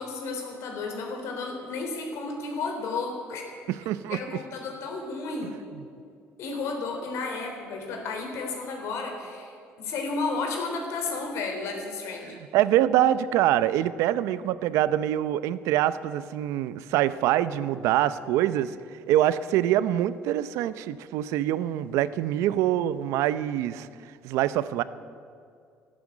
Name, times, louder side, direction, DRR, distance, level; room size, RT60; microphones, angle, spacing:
voice 1, 0.0-3.5 4.1-5.6 6.4-12.4, left 3 dB, 70° left, 3 dB, 3.7 m, -32 dB
voice 2, 3.7-4.4 5.7-5.8 12.3-18.8 19.1-23.9 24.2-24.8, right 12 dB, 80° right, 15 dB, 0.6 m, -25 dB
13.0 x 11.5 x 9.7 m, 2.3 s
cardioid pair, 100°, 5 cm